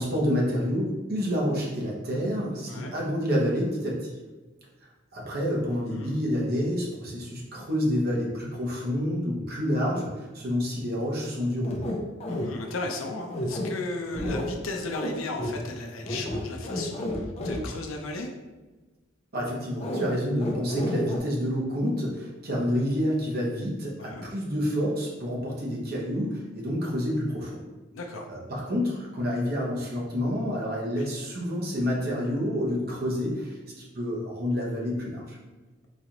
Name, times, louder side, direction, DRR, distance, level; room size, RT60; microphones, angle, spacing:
voice 1, 0.0-4.1 5.1-11.8 19.3-27.6 28.3-35.4, equal, 50° right, -3 dB, 0.9 m, -28 dB
voice 2, 5.7-6.2 12.3-18.3 24.0-24.3 27.9-28.3 31.0-31.1, left 2 dB, 90° left, 2 dB, 0.5 m, -36 dB
sound 1, 11.6-12.5 13.3-13.7 14.1-14.5 14.9-15.1 15.3-15.5 16.1-17.6 19.8-20.1 20.4-21.2, left 1 dB, 30° left, 0.5 m, -31 dB
4.0 x 2.5 x 3.0 m, 1.2 s
head